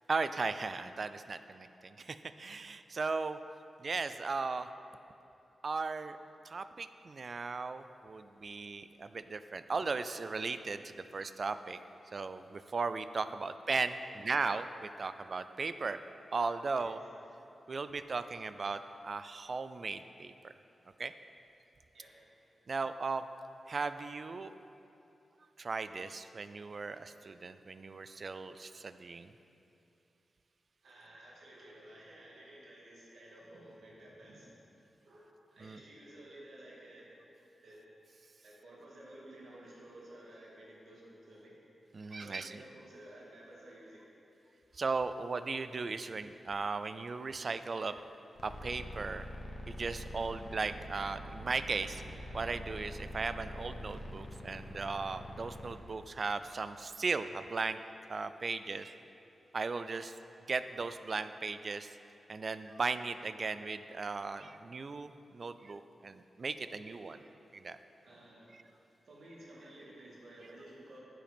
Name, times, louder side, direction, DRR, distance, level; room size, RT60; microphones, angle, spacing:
voice 1, 0.1-3.4 3.8-4.7 5.6-6.2 6.4-11.8 12.1-16.0 16.3-17.0 17.7-20.5 21.0-21.1 22.7-23.3 23.7-24.5 25.6-29.3 35.6-35.8 41.9-42.6 44.7-47.9 48.4-49.2 49.7-52.0 52.3-57.8 58.1-59.0 59.5-60.2 60.5-62.0 62.3-67.2 67.5-67.8 68.5-68.6, right 4 dB, 40° right, 11 dB, 0.3 m, -37 dB
voice 2, 30.8-34.6 35.0-37.1 37.6-37.8 38.4-41.5 42.2-44.0 66.6-67.2 68.0-68.6 69.1-71.0, right 1 dB, 65° right, -5 dB, 2.3 m, -54 dB
sound 1, 48.4-55.8, equal, 60° left, 1.3 m, -45 dB
9.1 x 7.6 x 5.2 m, 2.9 s
wide cardioid pair, 165°, 0 cm